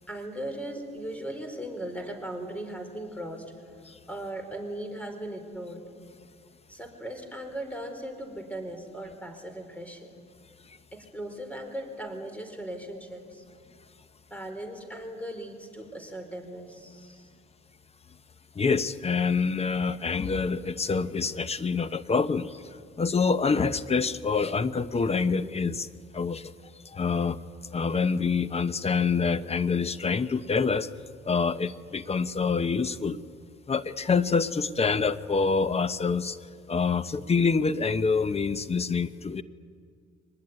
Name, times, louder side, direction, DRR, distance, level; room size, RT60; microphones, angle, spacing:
voice 1, 0.1-3.5 4.1-5.8 6.7-10.1 10.9-13.4 14.3-17.3, right 1 dB, 5° left, 6 dB, 4.6 m, -38 dB
voice 2, 18.6-22.6 23.0-25.9 26.1-26.5 26.9-27.4 27.7-30.9 31.3-33.2 33.7-36.4 36.7-39.4, left 5 dB, 30° left, 14 dB, 0.9 m, -26 dB
23.5 x 20.0 x 9.7 m, 2.1 s
cardioid pair, 90°, 20 cm